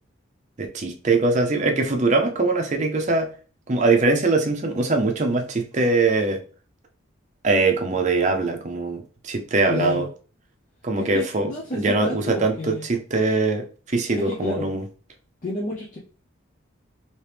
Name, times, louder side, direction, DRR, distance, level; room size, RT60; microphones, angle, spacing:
voice 1, 0.6-3.3 3.7-6.4 7.4-10.0 10.8-14.8, right 3 dB, 35° right, 4 dB, 0.5 m, -22 dB
voice 2, 9.7-10.1 11.1-12.9 14.2-14.7 15.4-16.0, equal, 40° left, -4 dB, 0.6 m, -30 dB
3.1 x 2.9 x 3.3 m, 0.39 s
head